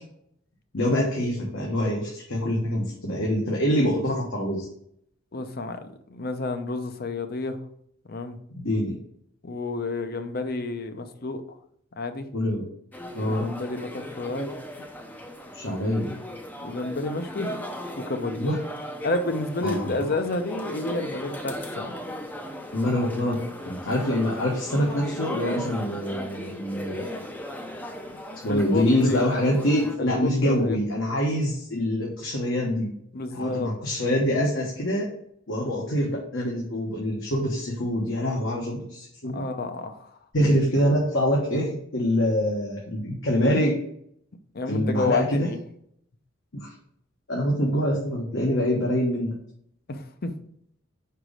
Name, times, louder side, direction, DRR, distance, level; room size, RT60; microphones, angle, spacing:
voice 1, 0.7-4.7 8.6-8.9 12.3-12.6 13.1-13.5 15.5-16.1 18.4-18.6 19.6-19.9 22.7-23.3 23.6-27.2 28.4-32.9 33.3-35.1 35.5-39.5 40.3-43.8 44.7-45.5 46.5-46.7 47.3-49.3, equal, 65° left, 1.3 m, -25 dB
voice 2, 5.3-7.6 8.1-8.4 9.4-11.4 12.0-12.3 13.2-14.5 16.6-17.5 18.0-18.4 19.0-21.9 28.5-29.2 30.0-30.8 33.1-33.7 39.3-40.1 44.5-45.6 49.9-50.3, left 2 dB, 50° left, 0.7 m, -30 dB
sound 1, 12.9-30.0, equal, 10° left, 0.5 m, -37 dB
5.0 x 4.7 x 5.0 m
head